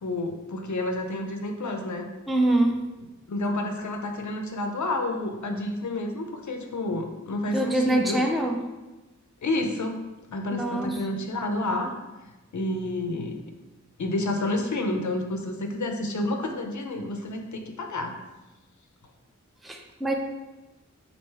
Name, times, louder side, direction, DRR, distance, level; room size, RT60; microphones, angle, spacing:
voice 1, 0.0-2.1 3.3-8.3 9.4-10.0 10.3-12.0 12.5-13.4 14.0-18.1, left 2 dB, 70° left, 4 dB, 0.5 m, -29 dB
voice 2, 2.3-2.8 7.5-8.6 10.5-11.0 19.6-20.1, right 1 dB, ahead, 2 dB, 0.4 m, -24 dB
3.2 x 2.6 x 4.5 m, 1.1 s
wide cardioid pair, 50°, 30 cm